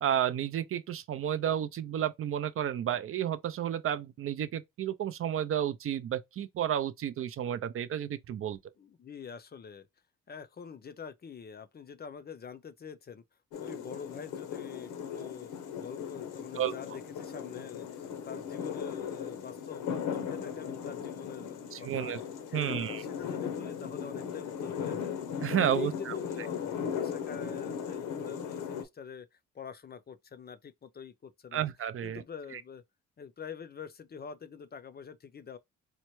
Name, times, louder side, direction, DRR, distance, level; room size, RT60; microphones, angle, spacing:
voice 1, 0.0-8.6 16.6-16.7 21.7-22.2 22.5-23.0 25.4-26.1 31.5-32.2 32.5-32.6, right 10 dB, 50° right, 0.4 m, -31 dB
voice 2, 8.8-9.9 10.3-13.2 13.6-15.5 15.8-22.1 22.5-25.1 25.6-31.7 32.0-32.8 33.2-35.6, left 6 dB, 35° left, 0.5 m, -45 dB
sound 1, 13.5-28.8, left 7 dB, 85° left, 0.9 m, -37 dB
4.3 x 2.1 x 3.0 m
cardioid pair, 90°, 30 cm